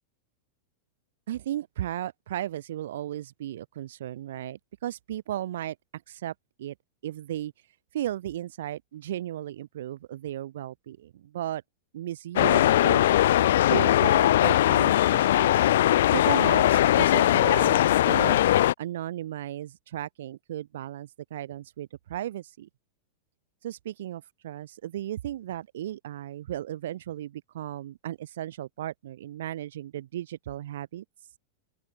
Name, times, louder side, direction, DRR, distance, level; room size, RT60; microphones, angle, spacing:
voice 1, 1.3-6.3 6.6-6.7 7.0-7.5 7.9-11.6 11.9-13.0 13.6-15.7 16.1-18.4 18.8-22.7 23.6-31.0, right 12 dB, 75° right, 3.0 m, -35 dB
sound 1, 12.4-18.7, left 13 dB, 75° left, 1.4 m, -20 dB
open air
supercardioid pair, 155°, 0 cm